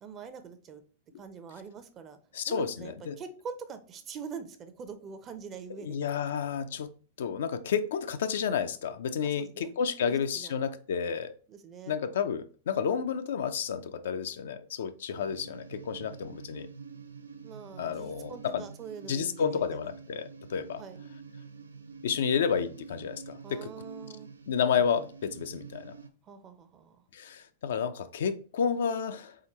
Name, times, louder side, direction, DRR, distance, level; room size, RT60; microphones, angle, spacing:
voice 1, 0.0-0.8 1.2-2.2 2.5-6.0 9.2-9.7 10.3-10.5 11.5-12.0 17.4-19.7 20.8-21.0 23.4-24.3 26.2-27.0, right 6 dB, 30° right, 0.6 m, -44 dB
voice 2, 2.3-3.2 5.8-6.9 7.2-11.3 11.9-16.7 17.8-18.6 19.1-20.8 22.0-23.7 24.5-25.9 27.1-29.4, left 7 dB, 70° left, 0.4 m, -31 dB
sound 1, 15.1-26.1, right 5 dB, 85° right, 0.4 m, -47 dB
3.8 x 3.7 x 3.0 m
hypercardioid pair, 100°, 0 cm